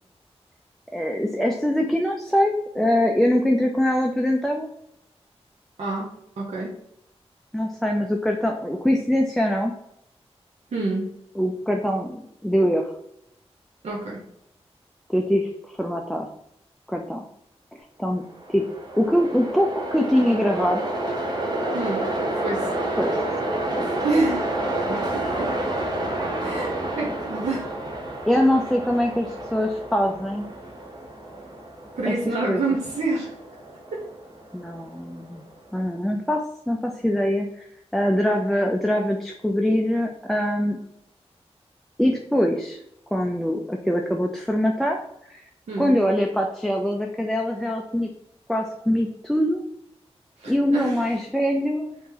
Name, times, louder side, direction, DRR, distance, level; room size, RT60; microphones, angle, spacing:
voice 1, 0.9-4.7 7.5-9.7 11.4-12.9 15.1-16.3 16.9-17.2 18.0-18.2 18.5-18.6 19.0-20.8 23.0-23.2 23.8-23.9 26.5-26.6 27.0-27.1 28.3-30.5 32.0-32.1 32.5-32.6 34.5-35.4 35.7-37.7 37.9-40.8 42.0-42.8 43.1-45.0 45.3-45.4 45.8-48.1 48.5-49.6 50.5-52.0, equal, ahead, 1 dB, 0.3 m, -23 dB
voice 2, 6.4-6.7 10.7-11.1 13.8-14.2 21.7-22.7 23.8-24.5 24.9-25.7 26.4-27.7 32.0-33.3 33.9-34.0 45.7-45.9 50.4-51.1, right 3 dB, 85° right, -4 dB, 0.7 m, -28 dB
Train, 18.3-35.5, right 1 dB, 40° right, 0.8 m, -30 dB
3.0 x 2.8 x 3.7 m, 0.77 s
wide cardioid pair, 105°, 11 cm